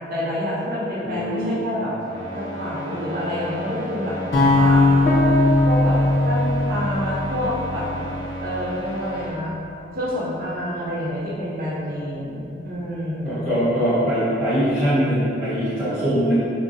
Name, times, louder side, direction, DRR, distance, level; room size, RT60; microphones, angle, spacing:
voice 1, 0.1-1.9 2.3-4.2 4.5-4.9 5.6-6.0 6.2-7.9 8.4-9.5 9.9-13.4, equal, 55° right, -6 dB, 0.5 m, -28 dB
voice 2, 1.0-1.5 13.2-16.3, equal, 5° right, -15 dB, 1.4 m, -22 dB
sound 1, 2.0-9.3, left 1 dB, 25° left, 0.8 m, -33 dB
sound 2, 4.3-8.5, left 2 dB, 85° left, 0.6 m, -20 dB
sound 3, 5.1-14.7, right 1 dB, 40° left, 0.4 m, -32 dB
3.5 x 2.0 x 2.6 m, 2.7 s
head